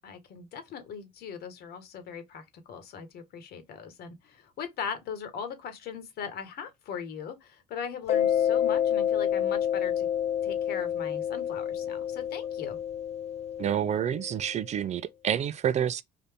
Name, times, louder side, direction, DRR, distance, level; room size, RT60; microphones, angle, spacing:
voice 1, 0.0-10.1 10.4-12.8, left 6 dB, 70° left, 1.4 m, -39 dB
Mallet percussion, 8.1-14.5, left 10 dB, 40° left, 0.4 m, -28 dB
voice 2, 13.6-16.0, right 9 dB, 45° right, 0.4 m, -28 dB
4.0 x 2.6 x 3.4 m
cardioid pair, 110°, 17 cm